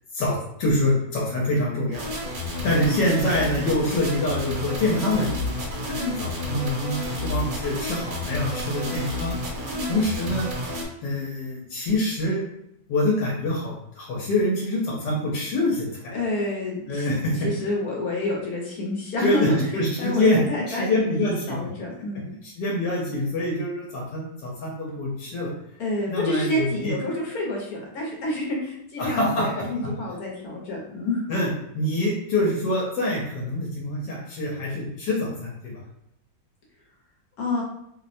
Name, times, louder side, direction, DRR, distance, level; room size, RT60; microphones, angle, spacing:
voice 1, 0.1-2.0 2.6-9.3 9.9-10.5 11.0-12.4 12.9-16.1 16.9-17.3 19.2-20.4 20.7-21.6 22.4-25.5 26.1-26.9 29.0-29.6 31.3-35.8, left 1 dB, 80° left, -3 dB, 1.3 m, -25 dB
sound 1, 1.9-10.8, left 1 dB, 70° right, 1.2 m, -30 dB
voice 2, 5.9-6.2 9.6-9.9 16.1-17.1 17.4-19.6 20.0-22.4 25.8-31.3 37.4-37.6, left 1 dB, 65° left, -3 dB, 1.1 m, -28 dB
3.0 x 2.0 x 2.5 m, 0.77 s
omnidirectional pair, 1.9 m